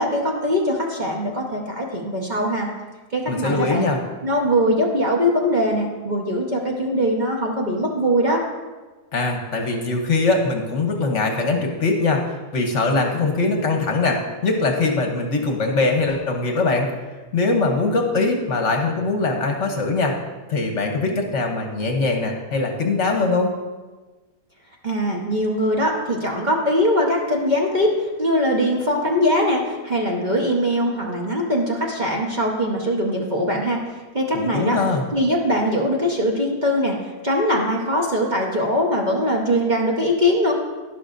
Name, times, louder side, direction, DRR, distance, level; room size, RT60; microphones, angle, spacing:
voice 1, 0.0-2.7 3.1-3.9 4.2-8.4 24.8-33.8 34.1-34.8 35.1-40.5, equal, 35° right, -2 dB, 1.0 m, -21 dB
voice 2, 3.3-4.0 9.1-16.9 17.3-20.2 20.5-23.5 34.3-35.0, left 3 dB, 55° left, 3 dB, 1.1 m, -22 dB
11.5 x 10.5 x 2.5 m, 1.3 s
omnidirectional pair, 1.7 m